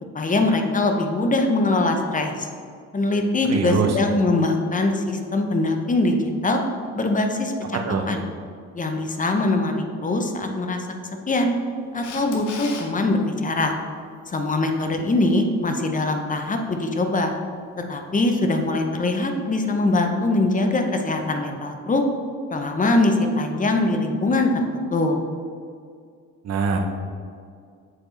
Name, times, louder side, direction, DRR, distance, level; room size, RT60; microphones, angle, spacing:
voice 1, 0.1-2.5 2.9-6.6 6.9-7.8 8.1-8.2 8.7-10.9 11.3-11.5 11.9-13.7 14.3-17.3 17.9-22.0 22.5-24.5 24.9-25.2, left 2 dB, 25° left, 4 dB, 0.8 m, -22 dB
voice 2, 3.5-4.0 7.7-8.1 26.4-26.8, right 5 dB, 60° right, 3 dB, 0.9 m, -23 dB
Camera, 12.0-12.9 19.6-19.7, left 5 dB, 80° left, 0.9 m, -36 dB
7.6 x 4.3 x 3.2 m, 2.2 s
cardioid pair, 90°, 30 cm